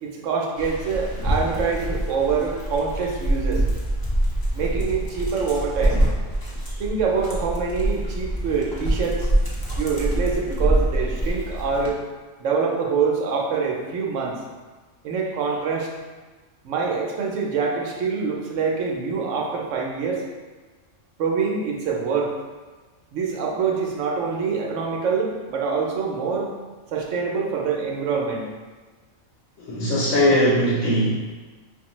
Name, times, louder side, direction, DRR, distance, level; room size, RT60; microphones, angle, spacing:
voice 1, 0.0-3.6 4.5-6.0 6.8-9.3 9.8-12.0 12.4-14.4 15.0-15.9 16.6-20.2 21.2-22.3 23.1-26.5 26.9-28.5, right 5 dB, 75° right, -1 dB, 1.0 m, -25 dB
Dog, 0.6-11.9, right 1 dB, 30° left, 0.4 m, -25 dB
voice 2, 29.7-31.1, equal, 70° left, -7 dB, 1.0 m, -19 dB
5.0 x 2.1 x 3.0 m, 1.3 s
omnidirectional pair, 1.3 m